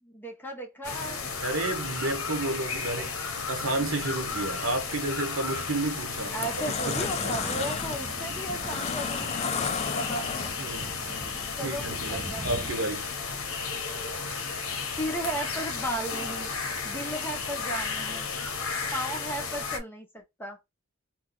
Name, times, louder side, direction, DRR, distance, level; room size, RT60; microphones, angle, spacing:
voice 1, 0.0-1.3 6.3-10.3 11.6-12.6 14.9-16.5 16.8-18.3 18.9-20.6, right 1 dB, 10° left, 0.8 m, -35 dB
sound 1, 0.8-19.8, left 5 dB, 80° left, 0.8 m, -34 dB
voice 2, 1.4-7.8 10.6-11.0 11.6-13.1, right 2 dB, 80° right, 1.0 m, -32 dB
sound 2, 5.5-5.7 6.2-10.8, left 6 dB, 30° left, 0.3 m, -33 dB
sound 3, 7.0-12.7, right 1 dB, 25° right, 0.6 m, -42 dB
2.8 x 2.2 x 3.7 m
head